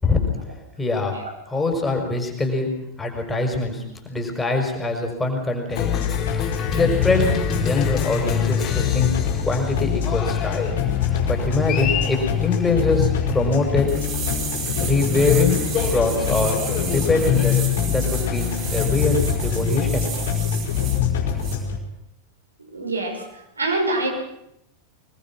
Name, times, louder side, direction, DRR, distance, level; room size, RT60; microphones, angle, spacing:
voice 1, 0.8-1.2 1.5-2.7 3.0-5.9 6.7-9.1 9.4-10.7 11.3-13.9 14.8-15.6 15.9-16.6 16.9-20.1, left 3 dB, 10° left, 3 dB, 5.7 m, -23 dB
Cheering, 5.7-20.9, left 6 dB, 30° left, 3.3 m, -32 dB
sound 1, 5.8-21.8, left 8 dB, 60° left, 4.9 m, -24 dB
sound 2, 13.9-21.0 21.4-21.6, right 6 dB, 35° right, 6.3 m, -32 dB
voice 2, 22.7-23.3 23.6-24.1, right 2 dB, 75° right, 1 dB, 5.9 m, -24 dB
25.5 x 20.5 x 6.2 m, 0.85 s
figure-of-eight pair, 90°, 0 cm